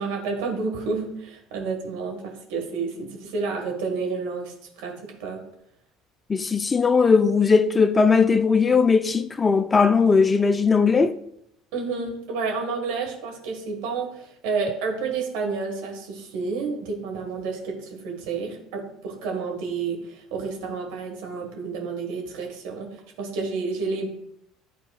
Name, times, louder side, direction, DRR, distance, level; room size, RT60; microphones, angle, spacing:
voice 1, 0.0-5.4 11.7-24.1, right 4 dB, 65° right, 1.6 m, -30 dB
voice 2, 6.3-11.2, left 5 dB, 25° left, 0.4 m, -19 dB
11.5 x 4.1 x 2.4 m
figure-of-eight pair, 65°, 0 cm